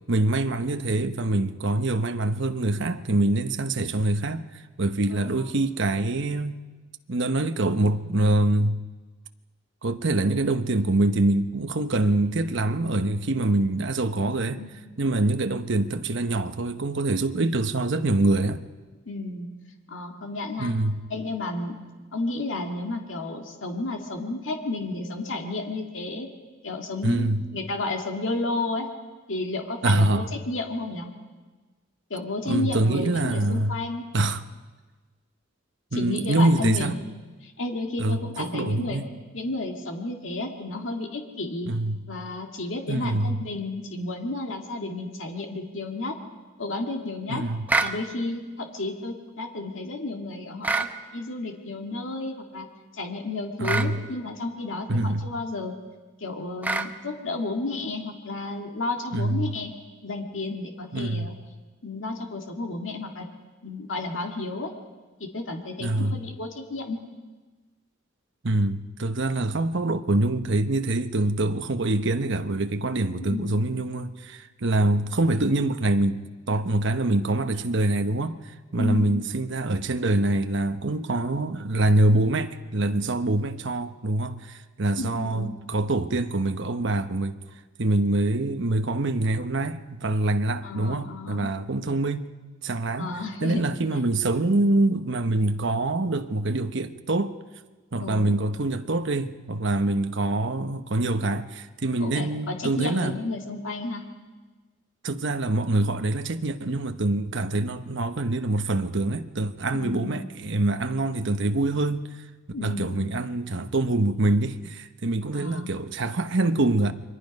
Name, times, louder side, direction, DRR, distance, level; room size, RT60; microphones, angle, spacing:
voice 1, 0.1-6.6 7.1-8.8 9.8-14.6 15.0-18.6 20.6-21.0 27.0-27.4 29.8-30.3 32.5-33.8 34.1-34.4 35.9-36.9 38.0-39.1 41.7-42.0 42.9-43.4 47.3-47.7 53.6-54.0 54.9-55.3 59.1-59.5 60.9-61.3 65.8-66.2 68.4-87.4 87.8-92.3 92.6-93.1 93.4-97.3 97.9-103.1 105.0-112.1 112.6-116.9, right 2 dB, 60° right, 1.0 m, -25 dB
voice 2, 5.1-5.5 14.5-15.0 19.1-19.5 19.9-20.7 21.1-21.8 22.1-26.3 26.6-28.9 29.3-31.1 32.1-34.0 35.9-37.0 37.4-39.0 39.3-41.7 42.1-46.2 46.6-47.4 47.8-52.7 52.9-55.7 56.2-59.7 60.0-61.3 61.8-63.3 63.6-64.7 65.2-67.0 73.2-73.6 78.8-79.1 85.0-85.5 90.6-91.5 93.0-93.6 98.0-98.4 102.0-104.0 109.7-110.2 112.5-113.1 115.3-115.7, left 2 dB, 65° left, 2.1 m, -32 dB
sound 1, 47.7-48.0 50.6-50.9 53.6-53.9 56.6-56.9, right 3 dB, 10° right, 0.8 m, -25 dB
29.0 x 23.0 x 5.3 m
head